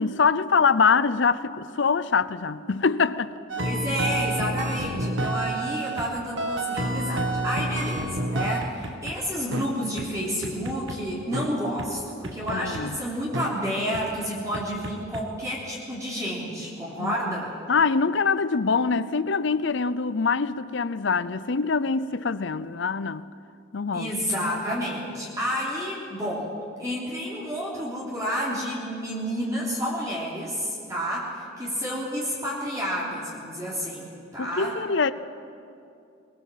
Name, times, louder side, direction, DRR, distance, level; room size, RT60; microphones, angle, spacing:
voice 1, 0.0-3.3 12.5-13.0 17.0-17.4 17.7-23.2 23.7-24.1 34.4-35.1, left 5 dB, 65° left, 0.6 m, -24 dB
sound 1, 3.5-6.1 6.4-9.1 9.5-9.7 10.0-10.1 10.4-11.0 11.3-11.5 11.8-11.9 12.2-12.8 13.3-13.5 13.9-14.0 14.5-15.2, right 1 dB, 70° right, 1.7 m, -29 dB
voice 2, 3.6-17.5 23.9-26.5 26.8-34.7, equal, 15° right, 3.3 m, -30 dB
22.0 x 21.5 x 7.5 m
head